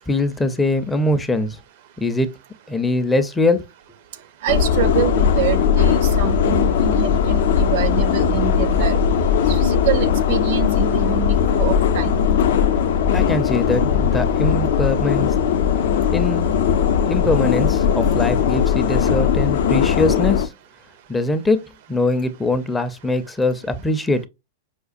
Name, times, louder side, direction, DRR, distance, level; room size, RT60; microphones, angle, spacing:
voice 1, 0.1-1.6 2.0-2.3 2.7-3.6 13.1-15.3 16.1-16.5 17.1-20.5 21.1-21.6 21.9-24.3, left 2 dB, 10° left, 0.4 m, -22 dB
voice 2, 4.4-9.0 9.5-12.2, right 11 dB, 60° right, 0.5 m, -26 dB
sound 1, 4.5-20.5, left 7 dB, 70° left, 0.4 m, -18 dB
5.0 x 2.2 x 2.4 m
hypercardioid pair, 130°, 0 cm